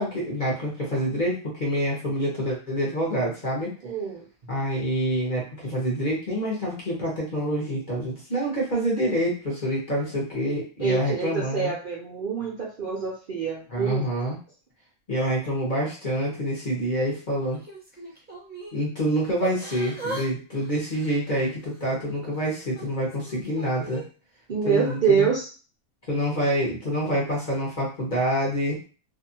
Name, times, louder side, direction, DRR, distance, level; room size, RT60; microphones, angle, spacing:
voice 1, 0.0-3.8 4.5-11.7 13.7-14.4 15.1-17.6 18.7-24.0 24.6-25.3 26.1-28.8, equal, 40° left, -4 dB, 0.9 m, -27 dB
voice 2, 3.8-4.2 10.8-14.1 24.5-25.5, right 6 dB, 55° right, -4 dB, 0.6 m, -26 dB
Yell / Crying sobbing, 17.5-18.8 19.4-20.3 20.5-21.9 22.4-24.0 24.7-25.0, right 2 dB, 10° right, 0.5 m, -38 dB
2.8 x 2.4 x 2.7 m, 0.36 s
omnidirectional pair, 1.5 m